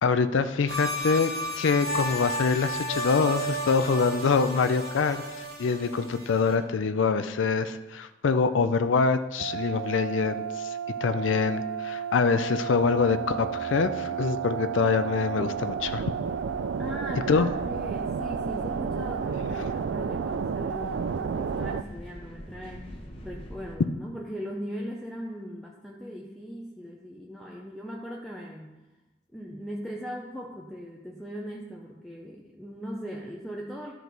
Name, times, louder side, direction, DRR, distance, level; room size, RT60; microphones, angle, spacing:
voice 1, 0.0-5.2 5.6-16.1 17.3-17.5, left 5 dB, 85° left, 10 dB, 0.5 m, -25 dB
sound 1, 0.7-6.5, equal, 55° right, 2.0 m, -33 dB
sound 2, 9.4-21.8, right 7 dB, 75° right, 0.3 m, -32 dB
sound 3, 15.8-23.7, equal, 30° left, 1.2 m, -42 dB
voice 2, 16.8-28.8 29.3-33.9, equal, ahead, -2 dB, 0.6 m, -39 dB
13.0 x 4.6 x 4.0 m, 1.1 s
head